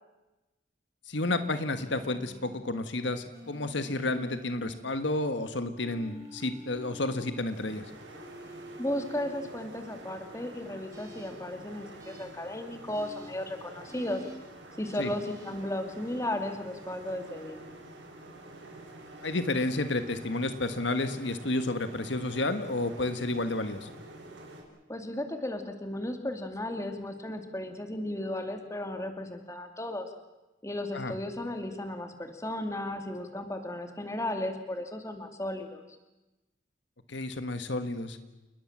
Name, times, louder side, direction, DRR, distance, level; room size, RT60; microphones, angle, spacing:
voice 1, 1.1-7.8 15.0-15.1 19.2-23.9 30.9-31.1 37.1-38.2, left 2 dB, 70° left, 9 dB, 1.6 m, -31 dB
sound 1, 1.2-2.4 3.3-4.8 5.8-7.4 8.1-9.5 10.9-11.3 12.0-12.2 12.9-13.3 13.9-14.3 14.8-15.5, equal, 15° right, 4.7 m, -48 dB
sound 2, 7.5-24.6, right 1 dB, 75° right, 6.9 m, -48 dB
voice 2, 8.8-14.2 14.8-17.6 24.9-30.1 30.6-35.8, left 1 dB, 15° left, 6 dB, 2.5 m, -35 dB
29.0 x 20.5 x 7.4 m, 1.0 s
head